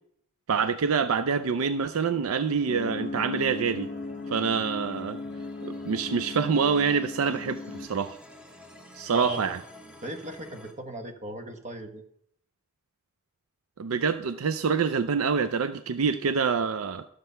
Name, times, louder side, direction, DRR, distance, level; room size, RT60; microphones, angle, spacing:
voice 1, 0.5-3.9 4.3-5.2 5.6-8.2 8.9-9.6 13.8-17.1, right 5 dB, 70° right, 12 dB, 0.5 m, -26 dB
sound 1, 0.8-10.7, left 1 dB, 5° right, 1.1 m, -51 dB
sound 2, 2.7-7.9, left 3 dB, 35° left, 0.9 m, -37 dB
voice 2, 9.1-9.4 10.0-12.0, right 2 dB, 35° right, 6 dB, 1.3 m, -36 dB
12.5 x 6.7 x 5.6 m, 0.70 s
head